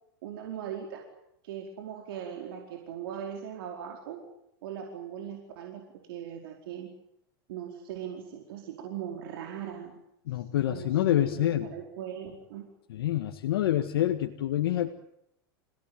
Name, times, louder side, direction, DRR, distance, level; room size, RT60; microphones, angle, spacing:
voice 1, 0.2-1.1 1.4-4.2 4.6-6.9 7.5-10.0 10.3-12.7, right 9 dB, 70° right, 2 dB, 4.7 m, -40 dB
voice 2, 10.3-11.7 12.9-14.9, left 12 dB, 80° left, 5 dB, 1.8 m, -27 dB
29.5 x 17.5 x 9.1 m, 0.79 s
hypercardioid pair, 115°, 12 cm